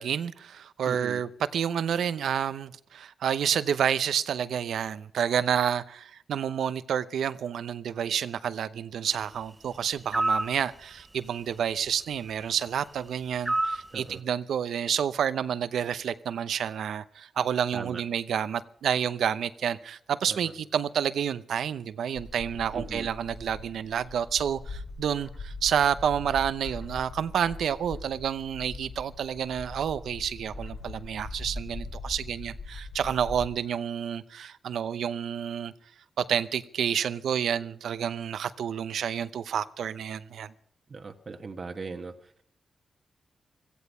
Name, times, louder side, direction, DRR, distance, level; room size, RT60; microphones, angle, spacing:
voice 1, 0.0-35.7 36.2-40.5, right 8 dB, 85° right, 0.7 m, -29 dB
voice 2, 0.9-1.2 13.9-14.2 17.7-18.0 20.3-20.5 22.7-23.1 40.9-42.4, right 4 dB, 50° right, 1.3 m, -39 dB
sound 1, 10.1-10.5 13.5-13.9, right 2 dB, 25° right, 0.7 m, -26 dB
Bird, 22.1-33.5, left 2 dB, 60° left, 5.0 m, -41 dB
17.0 x 15.0 x 5.6 m
cardioid pair, 55°, 0 cm